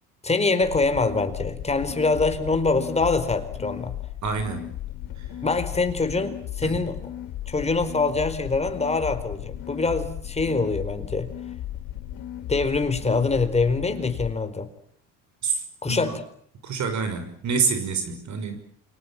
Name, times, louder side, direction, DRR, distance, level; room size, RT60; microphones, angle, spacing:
voice 1, 0.2-3.9 5.4-7.0 7.5-11.3 12.5-14.7 15.8-16.2, left 3 dB, 15° left, 9 dB, 4.6 m, -24 dB
sound 1, 0.6-14.3, left 12 dB, 70° left, 5.5 m, -36 dB
voice 2, 4.2-4.7 5.2-5.3 6.6-6.8 15.4-16.2 16.6-18.6, right 5 dB, 50° right, 8 dB, 6.0 m, -27 dB
29.0 x 25.5 x 7.5 m, 0.62 s
cardioid pair, 115°, 37 cm